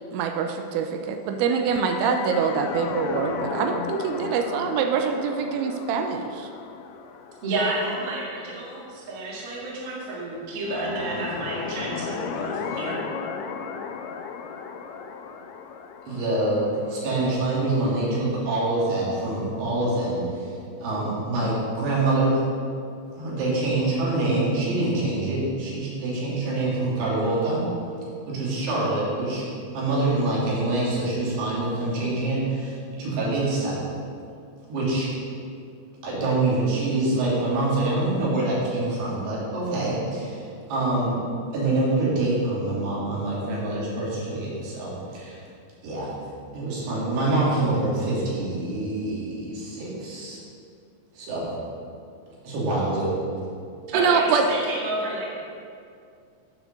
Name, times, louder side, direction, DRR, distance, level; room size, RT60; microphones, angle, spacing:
voice 1, 0.1-6.5 53.9-54.4, right 6 dB, 90° right, 5 dB, 3.0 m, -24 dB
sound 1, 1.5-8.7 10.6-18.4, left 6 dB, 85° left, 2.4 m, -35 dB
voice 2, 7.4-13.0 53.9-55.3, right 2 dB, 50° right, -5 dB, 1.9 m, -30 dB
voice 3, 16.1-22.4 23.2-27.7 28.3-29.4 29.7-33.8 34.7-35.1 36.0-41.2 41.5-45.4 45.8-46.1 46.5-50.4 51.2-51.5 52.4-53.2, right 2 dB, 65° right, -6 dB, 4.1 m, -25 dB
9.8 x 5.0 x 6.5 m, 2.3 s
omnidirectional pair, 5.3 m